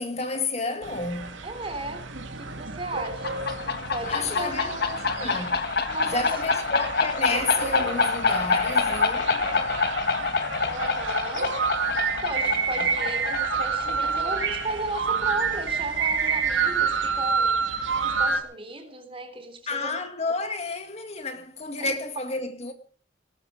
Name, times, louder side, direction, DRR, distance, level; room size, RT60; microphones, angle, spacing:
voice 1, 0.0-1.4 4.1-5.7 6.0-9.4 19.7-22.7, left 3 dB, 35° left, 2.0 m, -31 dB
sound 1, 0.8-18.4, right 5 dB, 85° right, 2.8 m, -29 dB
voice 2, 1.4-2.1 2.3-4.9 5.9-6.3 10.6-11.5 12.2-17.6 18.0-20.0 21.8-22.0, right 2 dB, 30° right, 3.6 m, -35 dB
sound 2, 3.0-16.4, left 4 dB, 55° left, 1.6 m, -27 dB
19.0 x 13.0 x 5.1 m
head